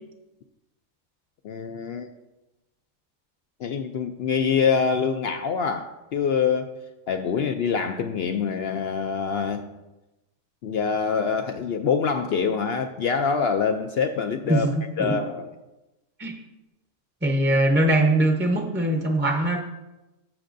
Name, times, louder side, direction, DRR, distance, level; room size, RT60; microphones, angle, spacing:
voice 1, 1.4-2.1 3.6-6.7 7.1-9.7 10.6-15.5, left 6 dB, 65° left, 6 dB, 0.6 m, -25 dB
voice 2, 17.2-19.6, right 1 dB, 10° right, 2 dB, 0.6 m, -21 dB
12.0 x 7.3 x 2.6 m, 1.0 s
omnidirectional pair, 1.5 m